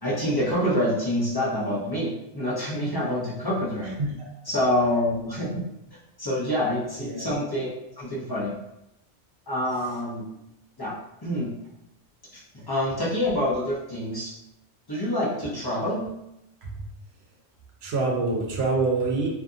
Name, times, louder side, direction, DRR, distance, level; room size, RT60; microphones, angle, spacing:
voice 1, 0.0-3.9 4.4-5.6 6.2-8.5 9.5-10.2 10.8-10.9 11.2-11.5 12.3-12.4 12.7-14.3 14.9-16.1, left 1 dB, 25° left, -7 dB, 0.7 m, -26 dB
voice 2, 7.0-7.3 16.6-16.7 17.8-19.3, right 3 dB, 65° right, -1 dB, 0.9 m, -25 dB
2.7 x 2.4 x 2.4 m, 0.85 s
omnidirectional pair, 1.2 m